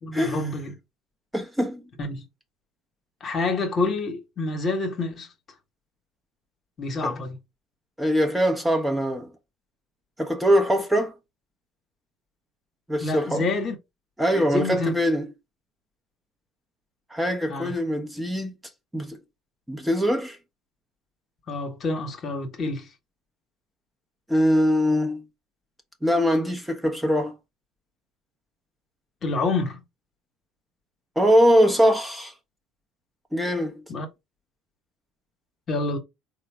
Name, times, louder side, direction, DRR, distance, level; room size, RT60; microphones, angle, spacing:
voice 1, 0.0-0.7 2.0-2.2 3.2-5.3 6.8-7.4 13.0-13.8 14.3-15.0 17.5-17.7 21.5-22.9 29.2-29.8 33.9-34.1 35.7-36.0, left 3 dB, 45° left, 1.0 m, -27 dB
voice 2, 1.3-1.8 7.0-7.1 8.0-9.3 10.2-11.1 12.9-13.5 14.2-15.3 17.1-18.5 18.9-19.2 19.7-20.4 24.3-25.2 26.0-27.3 31.2-32.3 33.3-33.8, equal, 5° right, 0.8 m, -22 dB
3.8 x 2.0 x 3.3 m
hypercardioid pair, 70°, 0 cm